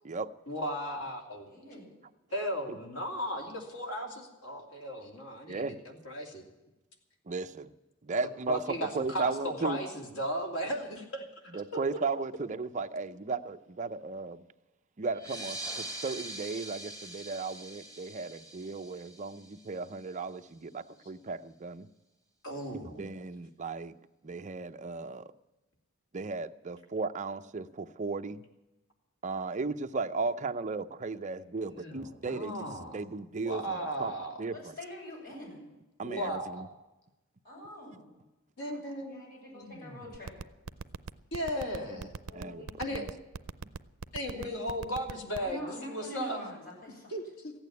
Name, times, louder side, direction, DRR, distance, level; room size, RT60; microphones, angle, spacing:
voice 1, 0.5-1.5 2.3-6.5 8.5-11.6 22.4-23.0 31.7-33.0 33.4-34.4 36.0-36.7 38.6-39.2 39.5-40.1 41.3-42.2 42.8-43.0 44.1-46.4 47.1-47.5, equal, 90° left, 2 dB, 2.8 m, -36 dB
voice 2, 1.5-1.9 34.5-35.6 37.4-38.1 39.1-40.3 42.3-43.0 45.4-47.1, equal, 45° left, -3 dB, 7.0 m, -45 dB
voice 3, 5.5-5.8 7.3-7.7 8.0-9.8 11.5-14.4 15.0-21.9 23.0-23.9 24.2-25.3 26.1-28.4 29.2-32.7 32.9-34.1 34.4-34.8 36.0-36.7 41.9-42.1 42.3-42.6 42.9-43.1, right 4 dB, 35° right, 8 dB, 0.6 m, -35 dB
sound 1, 15.1-20.2, right 1 dB, 20° left, 3.0 m, -43 dB
sound 2, 40.1-45.5, right 5 dB, 90° right, 0.5 m, -38 dB
15.0 x 8.9 x 9.4 m, 1.0 s
head